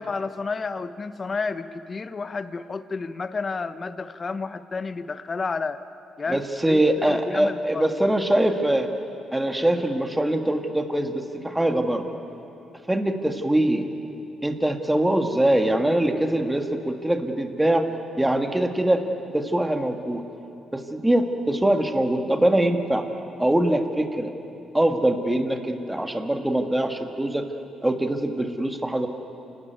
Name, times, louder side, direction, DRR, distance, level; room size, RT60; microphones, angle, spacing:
voice 1, 0.0-5.8 6.2-8.2, left 4 dB, 35° left, 12 dB, 0.9 m, -31 dB
voice 2, 6.3-8.9 9.3-12.1 12.9-13.9 14.4-17.9 18.2-19.0 19.3-20.2 20.7-23.1 23.4-24.3 24.7-27.5 27.8-29.1, right 1 dB, 10° right, 6 dB, 1.7 m, -23 dB
28.5 x 13.0 x 9.4 m, 3.0 s
cardioid pair, 90°, 0 cm